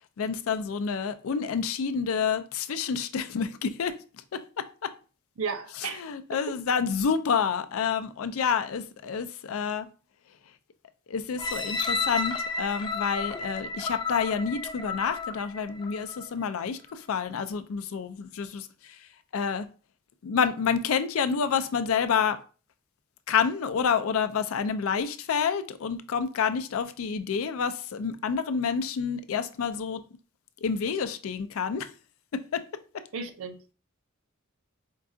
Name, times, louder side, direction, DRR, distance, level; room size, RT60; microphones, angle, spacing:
voice 1, 0.2-3.9 4.3-4.9 5.9-9.9 11.1-19.0 19.3-19.7 20.2-22.4 23.3-30.0 30.6-31.9 32.3-32.6 32.9-33.0, left 6 dB, 85° left, 0.4 m, -28 dB
voice 2, 5.4-6.0 33.1-33.6, right 5 dB, 80° right, 0.6 m, -33 dB
sound 1, 11.4-16.3 16.9-17.0, left 4 dB, 20° left, 0.5 m, -32 dB
4.5 x 2.4 x 2.5 m
head